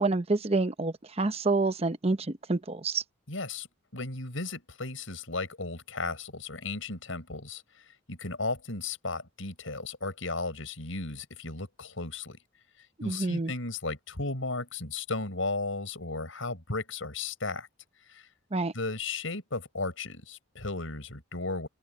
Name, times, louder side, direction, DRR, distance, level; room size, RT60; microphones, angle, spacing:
voice 1, 0.0-3.0 13.0-13.5 18.5-18.7, right 3 dB, 30° right, 0.8 m, -28 dB
voice 2, 3.3-3.7 3.9-7.6 8.1-12.4 13.0-17.7 18.1-18.3 18.7-21.7, left 3 dB, 80° left, 6.1 m, -35 dB
open air
head